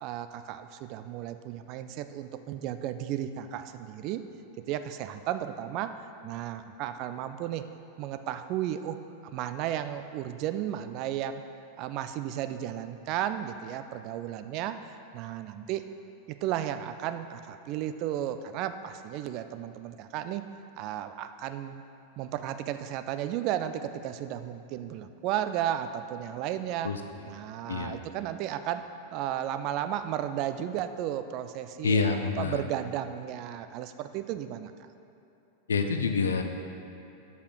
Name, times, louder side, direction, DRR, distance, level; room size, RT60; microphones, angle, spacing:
voice 1, 0.0-4.2 4.7-7.7 8.0-11.4 11.8-15.9 16.3-20.4 20.8-21.8 22.2-26.9 27.3-28.8 29.1-34.7, right 11 dB, 40° right, 10 dB, 0.3 m, -34 dB
voice 2, 27.7-28.0 31.8-32.6 35.7-36.4, left 4 dB, 70° left, 6 dB, 0.5 m, -27 dB
5.5 x 4.9 x 6.1 m, 2.8 s
figure-of-eight pair, 90°, 0 cm